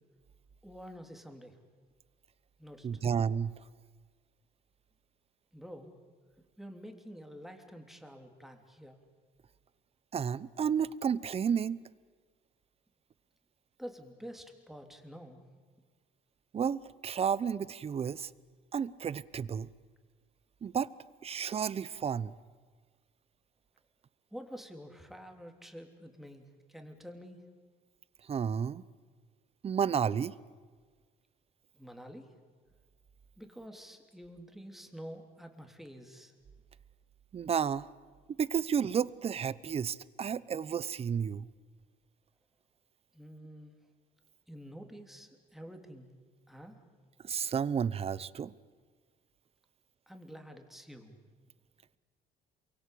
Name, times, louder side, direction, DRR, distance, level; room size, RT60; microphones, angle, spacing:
voice 1, 0.6-1.5 2.6-2.9 5.5-6.0 6.6-9.0 13.8-15.4 24.3-27.5 31.8-32.3 33.4-36.3 43.1-43.7 44.5-46.1 46.5-46.8 50.1-51.1, equal, ahead, 4 dB, 3.3 m, -48 dB
voice 2, 2.8-3.5 10.1-11.8 16.5-18.3 18.7-19.7 20.6-20.9 21.2-22.3 28.2-28.8 29.6-30.3 37.3-37.9 38.4-41.5 47.2-48.5, right 7 dB, 35° right, 19 dB, 0.8 m, -32 dB
28.0 x 24.0 x 8.6 m, 1.5 s
cardioid pair, 110°, 17 cm